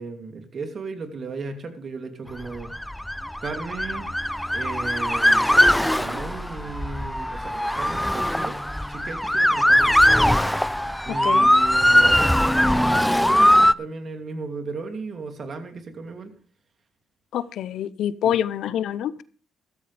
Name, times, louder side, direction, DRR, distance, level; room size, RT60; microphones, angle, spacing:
voice 1, 0.0-2.7 3.4-4.1 4.5-8.6 8.9-10.0 11.0-16.3 18.2-18.4, right 4 dB, 50° right, 5 dB, 2.7 m, -35 dB
Motor vehicle (road) / Siren, 2.6-13.7, equal, 5° left, 0.5 m, -20 dB
voice 2, 17.3-19.2, left 10 dB, 75° left, 17 dB, 0.7 m, -26 dB
14.5 x 13.5 x 3.4 m, 0.42 s
cardioid pair, 90°, 0 cm